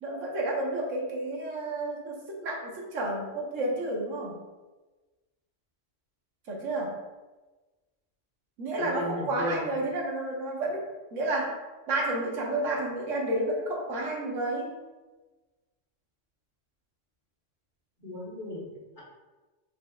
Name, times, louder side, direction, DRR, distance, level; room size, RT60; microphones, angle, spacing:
voice 1, 0.0-4.3 6.5-6.9 8.6-10.8 11.1-11.6 11.9-14.7, right 2 dB, 85° right, -1 dB, 1.3 m, -31 dB
voice 2, 8.8-9.7 18.0-19.0, left 1 dB, 45° left, -8 dB, 1.5 m, -35 dB
4.5 x 4.2 x 2.3 m, 1.2 s
omnidirectional pair, 1.3 m